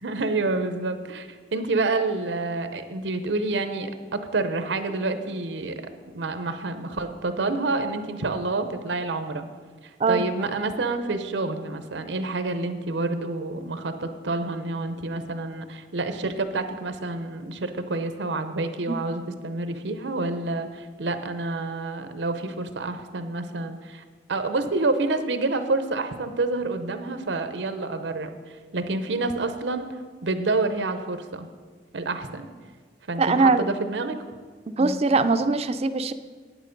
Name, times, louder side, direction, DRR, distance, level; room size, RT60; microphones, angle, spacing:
voice 1, 0.0-5.8 6.1-9.5 10.1-24.0 24.3-29.9 30.2-31.5 31.9-32.5 33.1-34.2 34.8-35.0, right 3 dB, 90° right, 9 dB, 0.7 m, -28 dB
voice 2, 33.2-33.7 34.7-36.1, right 3 dB, 35° right, 10 dB, 0.4 m, -21 dB
9.1 x 8.9 x 5.2 m, 1.6 s
head